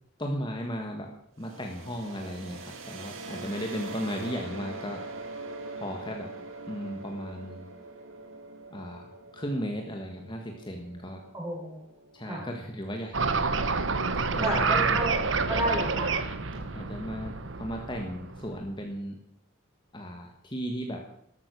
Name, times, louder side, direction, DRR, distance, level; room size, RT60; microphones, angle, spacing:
voice 1, 0.2-5.0 5.8-6.3 6.7-7.7 8.7-11.2 12.1-13.4 14.3-14.5 14.9-15.0 16.5-19.2 19.9-21.1, equal, 25° left, 2 dB, 1.6 m, -36 dB
sound 1, 1.4-13.1, right 2 dB, 90° right, 2.3 m, -43 dB
voice 2, 11.3-11.8 12.3-12.5 14.4-15.1 15.5-16.2, right 1 dB, 20° right, -3 dB, 6.7 m, -30 dB
sound 2, 13.1-18.5, right 4 dB, 70° right, 1.1 m, -28 dB
13.5 x 13.0 x 6.3 m, 0.72 s
head